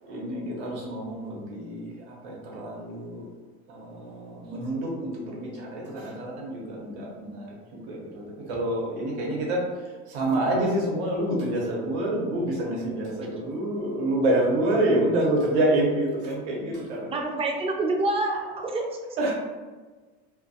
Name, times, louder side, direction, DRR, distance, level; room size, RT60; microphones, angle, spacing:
voice 1, 0.0-3.3 3.7-7.5 7.7-9.7 10.1-17.1 19.2-19.3, right 1 dB, 90° right, -2 dB, 0.8 m, -27 dB
voice 2, 17.1-18.9 19.2-19.3, right 2 dB, 20° right, 1 dB, 0.4 m, -27 dB
2.3 x 2.2 x 2.6 m, 1.3 s
supercardioid pair, 100°, 33 cm